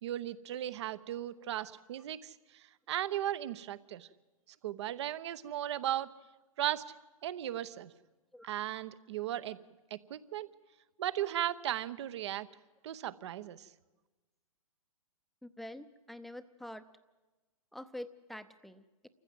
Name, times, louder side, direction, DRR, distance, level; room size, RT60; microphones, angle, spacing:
voice 1, 0.0-4.1 4.6-6.1 6.6-6.8 7.2-7.9 8.4-9.6 9.9-10.5 11.0-12.5 12.8-13.7, right 12 dB, 50° right, 16 dB, 0.9 m, -36 dB
voice 2, 15.4-16.9 17.7-19.1, left 1 dB, ahead, 11 dB, 0.7 m, -46 dB
28.5 x 15.0 x 7.7 m, 1.2 s
figure-of-eight pair, 120°, 18 cm